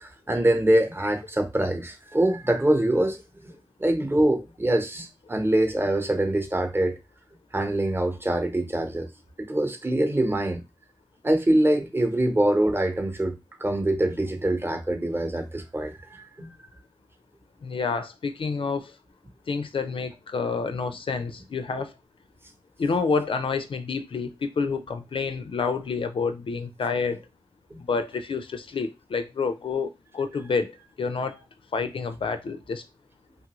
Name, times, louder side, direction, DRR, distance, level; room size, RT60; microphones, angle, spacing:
voice 1, 0.0-3.2 3.4-3.5 3.8-7.0 7.5-9.1 9.4-10.6 11.2-13.3 13.6-15.9 16.4-16.5 27.7-27.8, right 1 dB, 25° right, 0.9 m, -24 dB
voice 2, 17.6-18.9 19.5-21.9 22.8-27.2 27.8-31.4 31.7-32.8, left 5 dB, 75° left, 0.4 m, -28 dB
2.9 x 2.4 x 2.9 m
cardioid pair, 45°, 9 cm